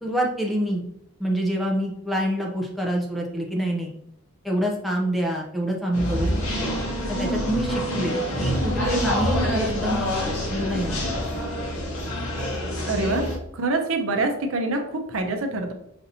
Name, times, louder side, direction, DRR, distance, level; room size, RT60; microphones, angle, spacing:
voice 1, 0.0-0.8 1.2-3.9 4.4-6.3 6.6-6.7 7.1-11.0, equal, ahead, -1 dB, 0.5 m, -26 dB
sound 1, 5.9-13.4, equal, 75° left, 1.0 m, -26 dB
voice 2, 12.9-13.2 13.5-15.7, right 2 dB, 65° right, 5 dB, 0.6 m, -25 dB
5.0 x 2.8 x 2.7 m, 0.75 s
head